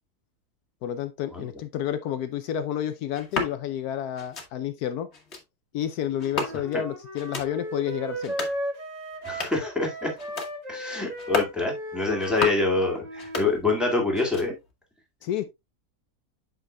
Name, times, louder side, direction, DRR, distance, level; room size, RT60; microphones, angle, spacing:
voice 1, 0.8-5.1 5.7-8.4 15.2-15.4, left 10 dB, 75° left, 1.1 m, -30 dB
sound 1, 3.1-3.5 4.1-4.5 5.1-5.4 6.2-6.8 7.1-7.5 8.1-8.6 9.1-9.7 10.1-10.5 11.1-11.6 12.1-12.7 13.1-13.9 14.1-14.7, left 3 dB, 45° left, 1.5 m, -33 dB
Wind instrument woodwind instrument, 6.2-13.5, right 1 dB, 25° right, 1.3 m, -36 dB
voice 2, 9.2-10.1 10.7-14.5, left 3 dB, ahead, 1.7 m, -26 dB
8.0 x 6.1 x 2.2 m
omnidirectional pair, 1.7 m